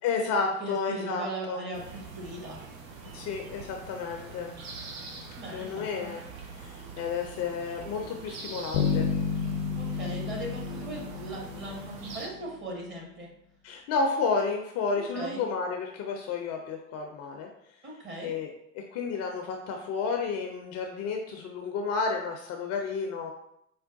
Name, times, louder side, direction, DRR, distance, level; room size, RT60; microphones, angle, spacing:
voice 1, 0.0-1.6 3.1-4.5 5.5-6.2 6.5-9.1 13.6-17.5 18.2-23.3, left 4 dB, 40° left, 3 dB, 0.4 m, -31 dB
voice 2, 0.6-2.6 5.4-6.1 9.8-13.3 14.9-15.4 17.8-18.3, right 2 dB, 30° right, -2 dB, 1.2 m, -39 dB
sound 1, 1.7-12.3, right 4 dB, 80° right, 0.7 m, -44 dB
Bass guitar, 8.7-12.5, left 5 dB, 80° left, 0.6 m, -31 dB
4.4 x 2.2 x 2.5 m, 0.75 s
hypercardioid pair, 75°, 40 cm